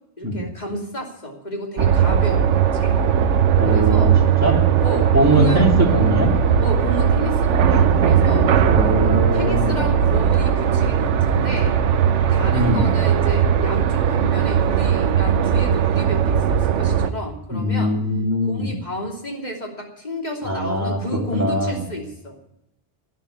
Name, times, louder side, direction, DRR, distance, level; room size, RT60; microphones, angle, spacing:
voice 1, 0.2-3.1 3.7-4.2 4.8-5.7 6.6-8.6 9.0-11.8 12.3-18.0 18.4-22.4, equal, 35° left, 0 dB, 3.1 m, -31 dB
sound 1, 1.8-17.1, right 8 dB, 85° right, 1.1 m, -18 dB
voice 2, 3.6-4.1 4.4-4.6 5.1-6.3 8.7-9.8 12.5-12.9 17.5-18.7 20.4-21.8, equal, 15° right, -1 dB, 3.2 m, -21 dB
12.0 x 10.5 x 8.2 m, 0.82 s
omnidirectional pair, 1.2 m